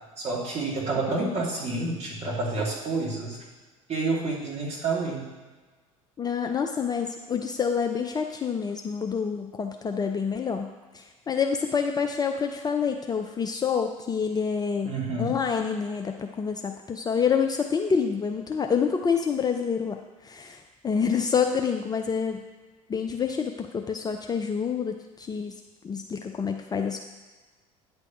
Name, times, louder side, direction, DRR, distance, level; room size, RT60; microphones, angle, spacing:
voice 1, 0.2-3.4 3.9-5.3 14.9-15.3, right 3 dB, 35° right, -4 dB, 2.5 m, -29 dB
voice 2, 6.2-22.4 22.9-27.0, left 6 dB, 20° left, 4 dB, 0.5 m, -27 dB
9.4 x 3.5 x 5.7 m, 1.3 s
figure-of-eight pair, 65°, 18 cm